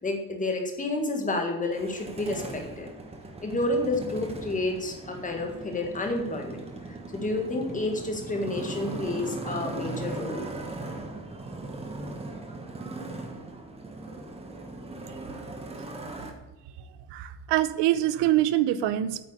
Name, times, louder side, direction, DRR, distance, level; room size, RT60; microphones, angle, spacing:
voice 1, 0.0-2.9 3.4-10.7, left 2 dB, 20° left, 3 dB, 1.7 m, -30 dB
Motorcycle, 1.6-16.3, right 2 dB, 15° right, 1.2 m, -39 dB
voice 2, 17.1-19.2, right 13 dB, 80° right, 15 dB, 0.9 m, -24 dB
8.8 x 8.0 x 6.8 m, 1.0 s
cardioid pair, 175°, 41 cm